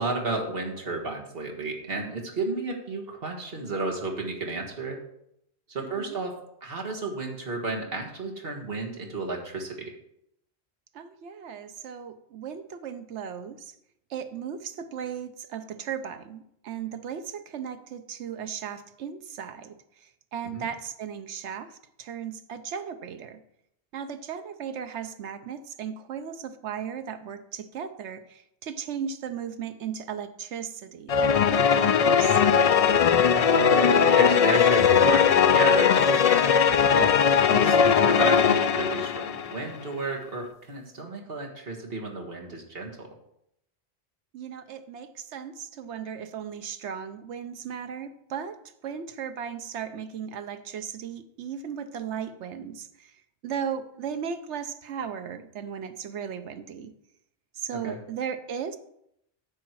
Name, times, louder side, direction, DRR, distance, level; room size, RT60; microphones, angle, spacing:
voice 1, 0.0-5.0 5.7-6.3 6.6-9.9 20.5-20.7 33.4-36.5 36.9-37.2 37.5-43.1 57.7-58.0, right 3 dB, 55° right, 0 dB, 2.0 m, -32 dB
voice 2, 5.8-6.2 10.9-13.7 14.1-23.4 23.9-32.4 44.3-48.6 48.8-56.9 57.5-58.8, right 7 dB, 85° right, 9 dB, 1.1 m, -36 dB
sound 1, 31.1-39.6, left 7 dB, 60° left, 0.4 m, -20 dB
10.0 x 7.3 x 4.7 m, 0.76 s
omnidirectional pair, 1.1 m